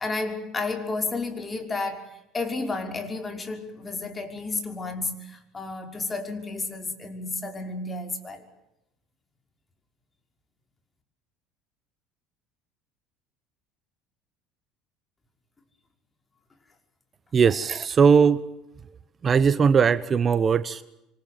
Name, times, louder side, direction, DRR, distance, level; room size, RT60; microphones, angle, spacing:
voice 1, 0.0-8.5, left 3 dB, 25° left, 5 dB, 5.6 m, -32 dB
voice 2, 17.3-18.4 19.2-20.8, right 6 dB, 35° right, 15 dB, 1.0 m, -19 dB
27.5 x 24.5 x 7.9 m, 0.89 s
hypercardioid pair, 70°, 0 cm